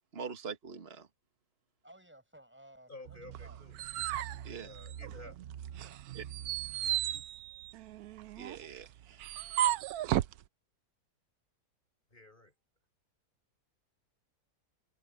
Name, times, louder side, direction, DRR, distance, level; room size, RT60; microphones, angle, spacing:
voice 1, 0.1-1.1 4.4-4.7 6.1-6.2 8.4-9.4, right 6 dB, 40° right, 1.8 m, -44 dB
voice 2, 1.8-3.6 5.7-6.0, right 1 dB, 5° right, 7.8 m, -57 dB
voice 3, 2.9-3.8 4.3-5.4 12.1-12.5, left 2 dB, 30° left, 5.4 m, -52 dB
sound 1, 3.1-7.3, right 10 dB, 60° right, 0.9 m, -47 dB
sound 2, 3.3-5.3 5.7-10.4, right 13 dB, 80° right, 1.1 m, -34 dB
omnidirectional pair, 1.6 m